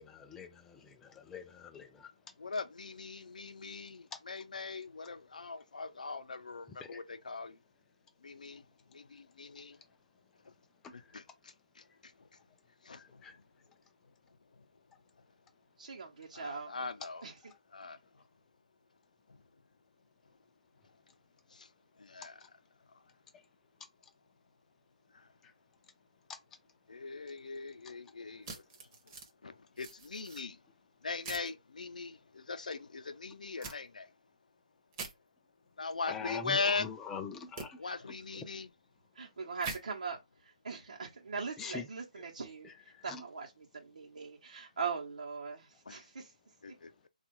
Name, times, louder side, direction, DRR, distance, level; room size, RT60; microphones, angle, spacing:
voice 1, 0.0-2.1 6.9-7.0 10.8-10.9 13.2-13.3 36.1-37.8 41.6-41.8 43.1-43.2, left 6 dB, 10° left, 0.3 m, -43 dB
voice 2, 2.4-7.6 8.2-9.8 10.4-10.6 10.9-12.4 12.8-13.4 14.0-14.7 15.2-15.3 16.3-17.3 17.7-18.3 19.3-19.4 20.8-20.9 21.5-22.6 22.9-23.2 25.1-25.3 26.9-30.6 31.0-34.1 35.8-36.9 37.7-38.7 45.9-46.1 46.6-47.1, left 4 dB, 75° left, 0.5 m, -41 dB
voice 3, 15.8-16.7 17.2-17.5 37.8-38.0 39.1-46.7, right 5 dB, 70° right, 0.8 m, -41 dB
sound 1, 28.4-29.3 29.8-30.4 31.2-31.5 33.6-33.8 34.9-35.1 37.6-37.7 39.6-39.8, right 4 dB, 25° right, 0.7 m, -43 dB
3.5 x 2.4 x 3.0 m
hypercardioid pair, 160°, 4 cm